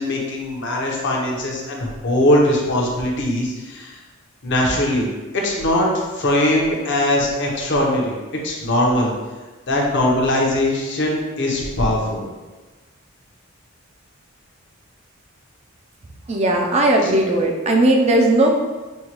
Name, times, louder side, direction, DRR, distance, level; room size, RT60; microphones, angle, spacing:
voice 1, 0.0-4.0 4.4-5.0 5.3-8.2 8.4-9.1 9.7-12.2, left 1 dB, 55° left, -1 dB, 0.8 m, -20 dB
voice 2, 16.3-18.6, right 1 dB, 30° right, 1 dB, 0.4 m, -17 dB
5.4 x 2.2 x 2.9 m, 1.2 s
head